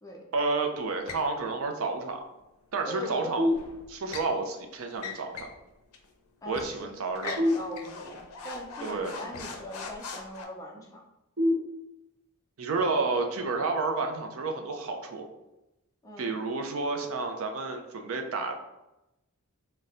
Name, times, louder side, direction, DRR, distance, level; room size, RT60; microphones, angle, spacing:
voice 1, 0.3-2.2 2.7-3.5 3.9-5.5 6.5-7.4 8.8-9.2 12.6-15.3 16.2-18.6, right 3 dB, 70° right, 4 dB, 0.4 m, -30 dB
sound 1, 1.1-1.3 3.5-4.3 4.9-5.6 5.9-6.1 6.5-6.7 7.2-10.4, left 4 dB, 75° left, 0.5 m, -41 dB
voice 2, 2.8-3.3 6.4-11.0 16.0-16.4, equal, 15° left, -1 dB, 0.4 m, -41 dB
sound 2, 3.4-4.3 7.3-8.4 11.4-12.4, left 1 dB, 40° right, 1.1 m, -29 dB
4.1 x 2.1 x 2.5 m, 0.92 s
head